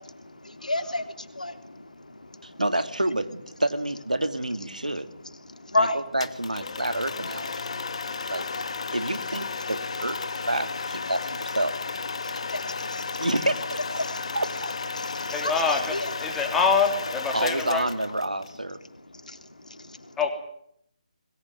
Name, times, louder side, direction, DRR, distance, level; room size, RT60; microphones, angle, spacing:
voice 1, 0.0-2.6 4.8-6.1 7.5-9.0 9.5-10.1 12.1-13.3 14.0-14.4 14.9-16.5 18.8-20.3, left 2 dB, 75° left, 8 dB, 3.4 m, -34 dB
voice 2, 2.4-5.1 5.8-5.9 6.1-7.5 8.3-8.4 8.9-11.7 13.2-13.8 14.3-14.7 17.3-18.8, right 1 dB, 85° right, 11 dB, 2.5 m, -28 dB
sound 1, 6.2-18.5, left 4 dB, 50° left, 1.7 m, -33 dB
voice 3, 15.3-17.9 20.2-20.3, left 5 dB, 5° left, 2 dB, 3.4 m, -25 dB
22.0 x 20.5 x 9.4 m, 0.72 s
figure-of-eight pair, 150°, 4 cm